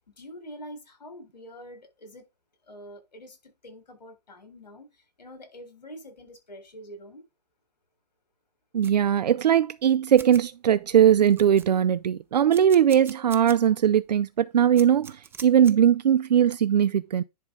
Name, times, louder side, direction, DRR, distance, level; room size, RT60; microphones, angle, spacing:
voice 1, 0.1-2.3 2.6-7.3, equal, 80° left, 3.9 m, -45 dB
voice 2, 8.7-17.2, right 9 dB, 75° right, 0.5 m, -20 dB
sound 1, 8.8-9.0 9.8-9.9 10.2-10.4 10.9-11.0 11.2-12.0 12.5-13.6 14.0-14.1 14.8-15.7, right 6 dB, 10° right, 0.6 m, -43 dB
10.5 x 3.5 x 5.1 m
hypercardioid pair, 120°, 21 cm